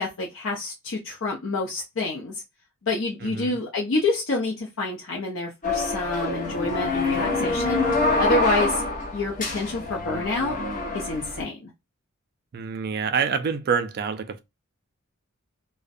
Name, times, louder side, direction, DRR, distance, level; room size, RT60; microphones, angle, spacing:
voice 1, 0.0-2.3 2.8-7.8 8.2-8.8 9.1-10.6 10.9-11.7, left 2 dB, 60° left, 0.6 m, -27 dB
voice 2, 3.2-3.6 12.5-14.4, right 6 dB, 45° right, 0.4 m, -26 dB
sound 1, 5.6-11.4, left 2 dB, 35° left, 1.0 m, -26 dB
2.4 x 2.1 x 2.5 m
head